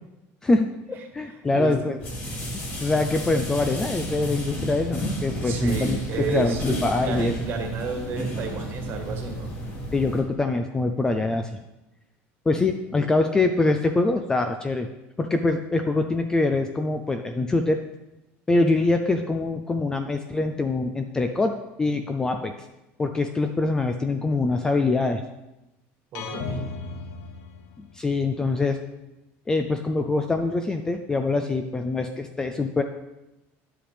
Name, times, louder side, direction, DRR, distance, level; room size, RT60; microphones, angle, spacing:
voice 1, 0.4-2.0 2.5-7.3 9.9-11.6 12.5-14.9 15.2-17.8 18.5-21.5 21.8-22.5 23.0-25.2 27.9-28.8 29.5-32.8, left 3 dB, 10° left, 6 dB, 0.4 m, -24 dB
sound 1, 2.0-10.2, equal, 35° left, 2.6 m, -32 dB
voice 2, 5.4-9.5 26.1-26.6, right 5 dB, 40° right, 3 dB, 1.5 m, -31 dB
sound 2, 26.2-28.2, left 4 dB, 70° left, 0.9 m, -35 dB
10.5 x 7.6 x 3.4 m, 0.95 s
cardioid pair, 165°, 6 cm